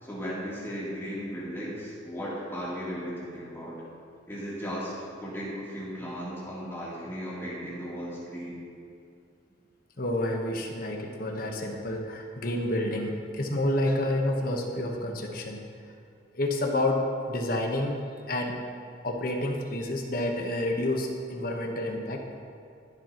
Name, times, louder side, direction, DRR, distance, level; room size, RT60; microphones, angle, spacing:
voice 1, 0.0-3.7 4.3-4.9 5.2-8.6, equal, 15° left, -8 dB, 3.0 m, -36 dB
voice 2, 10.0-15.6 16.3-18.0 18.3-18.6 19.0-22.3, left 1 dB, 50° left, 2 dB, 1.2 m, -29 dB
20.0 x 7.6 x 3.0 m, 2.4 s
head